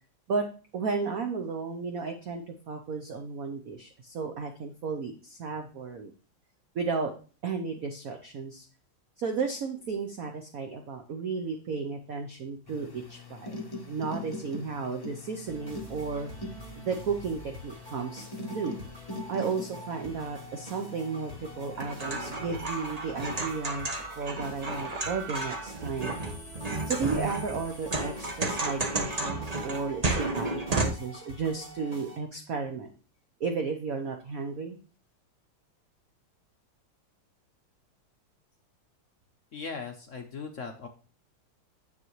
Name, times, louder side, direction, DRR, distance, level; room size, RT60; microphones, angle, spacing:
voice 1, 0.7-6.1 6.7-7.1 7.4-8.6 9.2-13.5 13.9-16.3 16.8-18.8 19.3-26.1 26.8-32.9 33.4-34.8, right 5 dB, 60° right, 5 dB, 0.9 m, -33 dB
sound 1, 12.7-25.3 25.9-28.7, left 2 dB, 20° left, 0.6 m, -44 dB
sound 2, 15.5-32.2, equal, 25° right, 1.4 m, -47 dB
sound 3, 21.7-30.9, right 2 dB, 90° right, 0.3 m, -32 dB
voice 2, 39.5-40.9, left 5 dB, 65° left, 4 dB, 0.7 m, -38 dB
9.6 x 7.3 x 3.1 m, 0.37 s
omnidirectional pair, 2.4 m